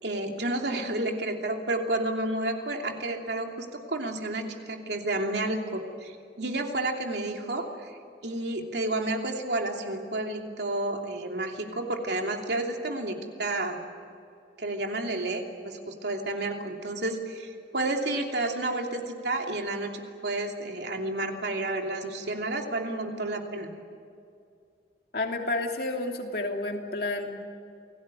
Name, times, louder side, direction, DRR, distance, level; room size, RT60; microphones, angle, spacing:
voice 1, 0.0-8.0 8.2-13.8 14.6-23.7, right 2 dB, 70° right, 2 dB, 2.9 m, -31 dB
voice 2, 25.1-27.3, left 2 dB, 55° left, 2 dB, 2.9 m, -30 dB
28.5 x 18.5 x 9.2 m, 2.4 s
head